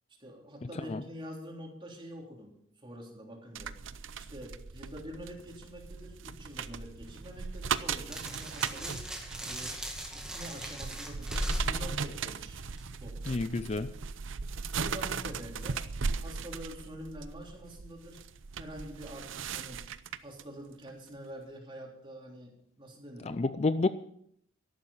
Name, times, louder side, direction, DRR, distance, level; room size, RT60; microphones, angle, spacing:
voice 1, 0.2-3.8 4.2-9.1 9.4-12.6 13.0-13.4 14.8-15.9 16.2-18.2 18.6-19.9 20.2-23.4, equal, 25° right, 3.4 m, -46 dB
sound 1, 3.6-20.4 20.9-21.1, right 5 dB, 70° right, 0.6 m, -38 dB
sound 2, 6.7-13.0, equal, 5° right, 1.9 m, -39 dB
voice 2, 13.3-13.9 23.3-23.9, left 3 dB, 30° left, 0.4 m, -29 dB
13.0 x 12.0 x 5.6 m
head